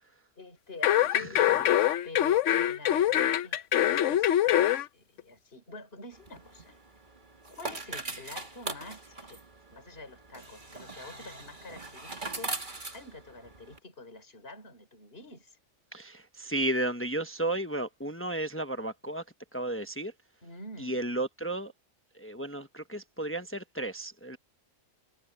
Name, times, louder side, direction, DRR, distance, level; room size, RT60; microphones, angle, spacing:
voice 1, 0.4-6.8 7.5-9.4 9.7-15.6 20.4-21.1, left 2 dB, 45° left, 4.2 m, -47 dB
sound 1, 0.8-4.8 5.2-5.3, left 11 dB, 70° left, 1.0 m, -24 dB
voice 2, 1.1-1.6 15.9-19.2 19.5-20.1 20.8-21.7 22.1-24.4, right 1 dB, 10° left, 0.9 m, -33 dB
sound 2, 6.1-13.8, right 2 dB, 35° right, 2.5 m, -41 dB
omnidirectional pair, 1.4 m